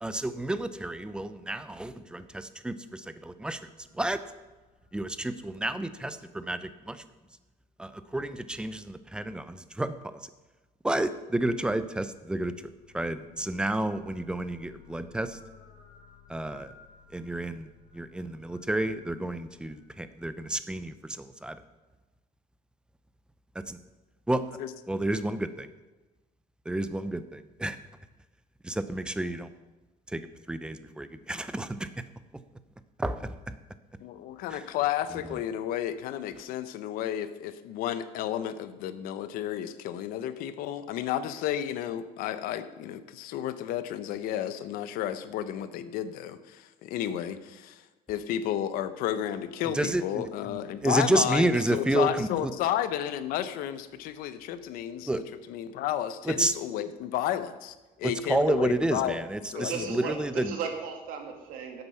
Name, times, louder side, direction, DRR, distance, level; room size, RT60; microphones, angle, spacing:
voice 1, 0.0-3.6 3.9-4.2 4.9-7.0 7.8-10.3 10.8-12.5 12.9-15.4 16.3-16.7 17.1-21.6 23.5-23.8 24.3-24.6 24.9-25.7 26.7-27.8 28.6-29.5 30.1-31.9 33.0-33.6 34.5-34.7 35.3-35.4 49.7-52.5 55.1-55.2 56.2-56.5 58.0-60.6, right 1 dB, 5° right, 12 dB, 0.5 m, -30 dB
sound 1, 3.8-7.4 11.6-20.9, left 6 dB, 40° left, 2.7 m, -57 dB
voice 2, 34.0-47.8 48.1-55.2 55.5-59.2 59.5-60.0, left 11 dB, 80° left, 12 dB, 0.9 m, -32 dB
voice 3, 59.5-61.8, right 6 dB, 75° right, 4 dB, 2.2 m, -36 dB
12.5 x 8.0 x 5.7 m, 1.2 s
cardioid pair, 155°, 15 cm